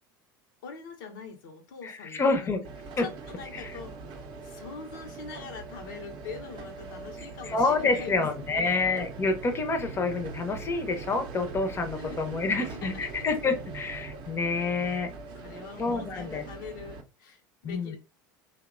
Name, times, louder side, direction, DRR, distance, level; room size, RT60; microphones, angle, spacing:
voice 1, 0.6-2.5 3.0-8.9 12.0-12.2 12.6-13.1 15.3-18.0, left 5 dB, 70° left, 4 dB, 0.6 m, -43 dB
voice 2, 1.8-2.6 3.0-3.1 3.5-3.8 7.4-15.1 15.8-16.4 17.6-18.0, left 3 dB, 25° left, 6 dB, 0.5 m, -28 dB
sound 1, 2.6-17.0, right 4 dB, 50° right, 0.6 m, -42 dB
2.8 x 2.1 x 2.4 m, 0.30 s
hypercardioid pair, 80°, 11 cm